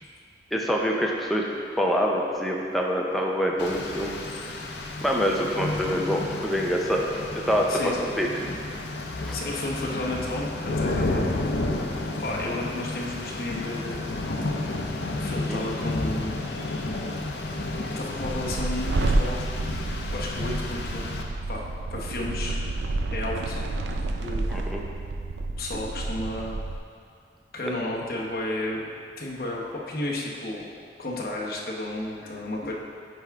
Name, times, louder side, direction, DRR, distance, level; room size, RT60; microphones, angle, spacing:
voice 1, 0.5-1.5 1.8-4.2 5.0-7.1 7.3-8.6 9.2-9.4 15.5-15.6 24.5-24.8, equal, ahead, -2 dB, 0.5 m, -25 dB
Rain, 3.6-21.2, left 2 dB, 80° left, 0.6 m, -31 dB
voice 2, 7.7-8.1 9.3-11.4 12.2-14.0 15.2-16.5 18.0-19.4 20.1-21.1 21.5-22.7 23.1-23.6 24.2-24.5 25.6-26.7 27.5-28.8 29.2-30.7 31.0-32.7, left 1 dB, 55° left, -3 dB, 0.9 m, -32 dB
sound 1, 18.2-26.8, right 2 dB, 80° right, 0.4 m, -30 dB
9.3 x 3.5 x 3.5 m, 2.4 s
head